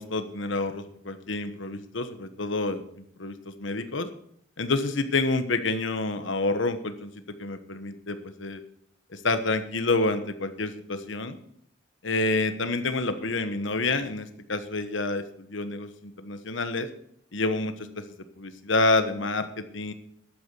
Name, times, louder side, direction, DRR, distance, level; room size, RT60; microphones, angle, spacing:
voice 1, 0.0-4.1 4.6-7.1 7.4-8.6 9.1-11.4 12.0-16.9 17.3-18.0 18.4-19.9, left 3 dB, 70° left, 10 dB, 1.2 m, -28 dB
11.5 x 8.6 x 6.8 m, 0.68 s
head